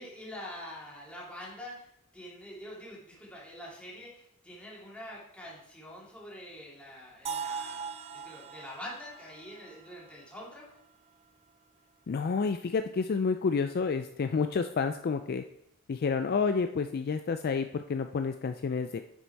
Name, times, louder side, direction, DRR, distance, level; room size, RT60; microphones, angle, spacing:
voice 1, 0.0-7.9 8.1-10.7, left 1 dB, 5° left, -5 dB, 2.6 m, -45 dB
sound 1, 7.3-11.2, right 6 dB, 30° right, 0.5 m, -41 dB
voice 2, 12.1-15.4 15.9-19.0, left 5 dB, 45° left, 8 dB, 0.4 m, -29 dB
8.2 x 6.1 x 4.6 m, 0.74 s
head